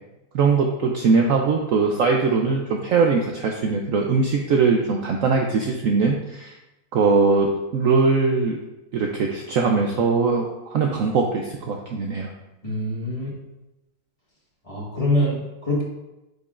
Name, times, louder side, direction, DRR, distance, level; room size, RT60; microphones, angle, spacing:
voice 1, 0.3-6.5 6.9-8.6 8.9-12.3, right 4 dB, 65° right, 1 dB, 0.8 m, -21 dB
voice 2, 12.6-13.3 14.7-15.8, left 1 dB, 20° left, -5 dB, 1.5 m, -24 dB
9.0 x 5.2 x 2.5 m, 0.97 s
omnidirectional pair, 1.8 m